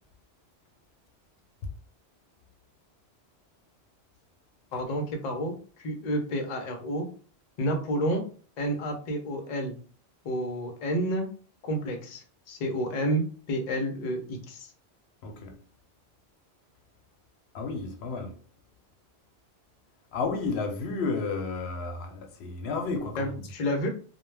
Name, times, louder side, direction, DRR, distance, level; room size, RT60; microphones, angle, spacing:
voice 1, 4.7-7.1 7.6-8.2 8.6-9.8 10.2-11.3 11.6-14.7 23.2-23.9, equal, 50° left, 0.6 m, -30 dB
voice 2, 15.2-15.6 17.5-18.3 20.1-23.4, left 4 dB, 80° left, 0.8 m, -32 dB
2.2 x 2.1 x 3.2 m
omnidirectional pair, 1.1 m